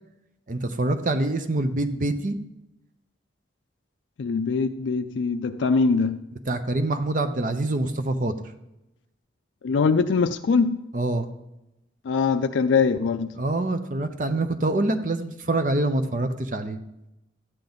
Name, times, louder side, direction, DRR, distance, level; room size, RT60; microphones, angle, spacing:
voice 1, 0.5-2.4 6.5-8.5 10.9-11.3 13.4-16.8, right 2 dB, 45° right, 0.7 m, -25 dB
voice 2, 4.2-6.2 9.6-10.8 12.0-13.3, left 5 dB, 85° left, 0.4 m, -22 dB
13.0 x 8.8 x 4.0 m
head